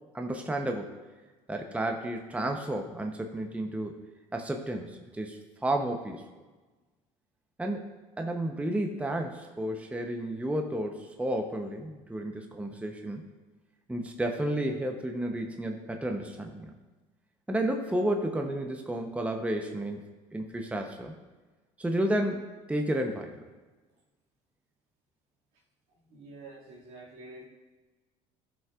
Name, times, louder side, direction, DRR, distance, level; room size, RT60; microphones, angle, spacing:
voice 1, 0.1-0.9 1.5-4.0 4.3-6.2 7.6-13.2 13.9-16.7 17.5-21.1 21.8-23.3, right 1 dB, 10° right, 3 dB, 0.8 m, -32 dB
voice 2, 25.9-27.5, right 2 dB, 75° right, -4 dB, 2.2 m, -48 dB
12.0 x 5.4 x 2.4 m, 1.2 s
supercardioid pair, 75°, 16 cm